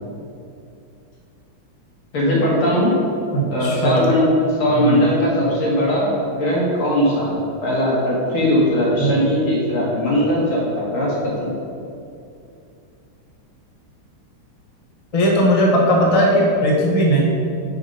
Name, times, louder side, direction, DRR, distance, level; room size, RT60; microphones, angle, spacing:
voice 1, 2.1-2.9 3.5-4.3 4.6-11.5, equal, 85° left, -5 dB, 2.7 m, -19 dB
voice 2, 3.3-4.0 4.7-5.0 9.0-9.2 15.1-17.2, equal, 25° left, -2 dB, 0.8 m, -17 dB
8.2 x 5.0 x 5.4 m, 2.5 s
omnidirectional pair, 2.2 m